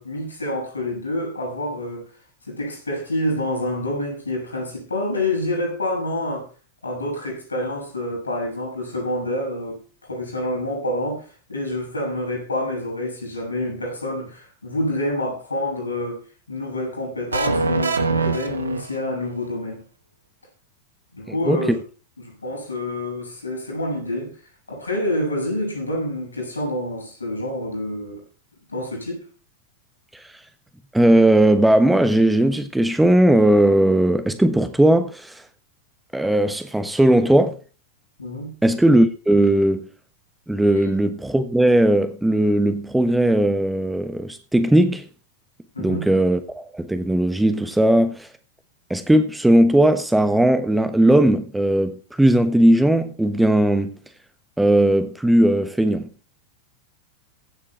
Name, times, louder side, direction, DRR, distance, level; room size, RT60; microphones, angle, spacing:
voice 1, 0.0-2.0 2.5-6.5 6.8-16.2 16.5-19.8 21.1-21.8 22.2-24.4 24.7-28.2 28.7-29.2 38.2-38.5 45.8-46.1, left 1 dB, 80° left, 6.9 m, -27 dB
sound 1, 17.3-19.3, right 3 dB, 75° right, 1.4 m, -23 dB
voice 2, 21.3-21.8 30.1-30.2 30.9-35.4 36.1-37.6 38.6-39.9 40.5-45.1 45.8-48.3 48.9-54.0 54.6-56.1, right 1 dB, 5° right, 1.2 m, -18 dB
15.5 x 7.5 x 4.5 m
figure-of-eight pair, 90°, 0 cm